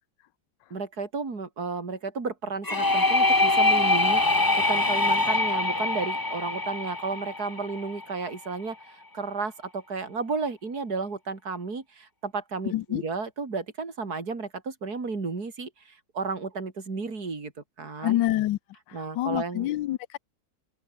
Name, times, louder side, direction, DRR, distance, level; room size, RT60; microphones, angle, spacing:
voice 1, 0.7-17.5 17.8-18.2 18.9-19.7, right 4 dB, 60° right, 4.1 m, -33 dB
sound 1, 2.6-8.3, left 2 dB, 15° left, 1.1 m, -24 dB
voice 2, 12.7-13.0 18.0-18.6 18.9-20.2, left 14 dB, 85° left, 1.4 m, -27 dB
open air
omnidirectional pair, 1.9 m